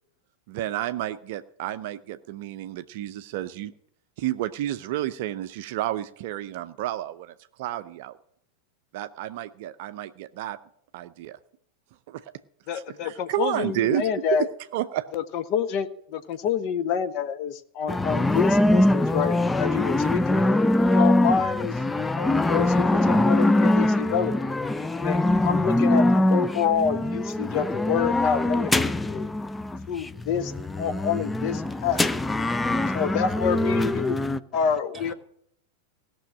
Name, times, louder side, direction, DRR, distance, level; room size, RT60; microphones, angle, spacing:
voice 1, 0.5-3.7 4.2-8.2 8.9-10.6 10.9-11.4 12.1-12.3 12.7-14.1 14.4-15.1, right 13 dB, 50° right, 0.5 m, -31 dB
voice 2, 12.7-14.5 15.1-20.5 20.8-21.8 22.1-24.5 25.0-29.3 29.9-30.5 30.8-32.1 32.9-34.2 34.5-35.1, left 7 dB, 40° left, 0.8 m, -28 dB
sound 1, 17.9-34.4, left 1 dB, 10° left, 0.4 m, -23 dB
voice 3, 31.6-32.0 32.3-33.1 34.2-35.1, right 4 dB, 15° right, 1.7 m, -47 dB
16.5 x 6.2 x 8.5 m
figure-of-eight pair, 90°, 0 cm